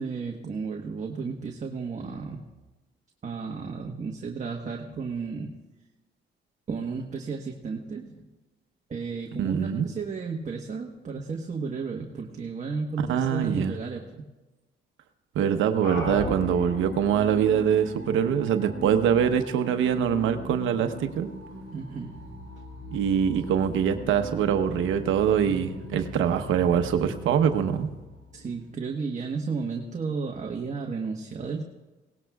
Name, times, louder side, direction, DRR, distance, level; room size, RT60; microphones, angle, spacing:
voice 1, 0.0-2.4 3.2-5.6 6.7-8.2 8.9-14.3 21.7-22.4 28.3-31.6, right 5 dB, 35° right, 1 dB, 1.2 m, -33 dB
voice 2, 9.4-9.9 13.1-13.8 15.3-21.3 22.9-27.9, right 8 dB, 80° right, 7 dB, 0.9 m, -24 dB
sound 1, 15.8-28.7, left 1 dB, 65° left, 5.1 m, -39 dB
21.5 x 18.0 x 2.3 m, 1.1 s
cardioid pair, 90°, 20 cm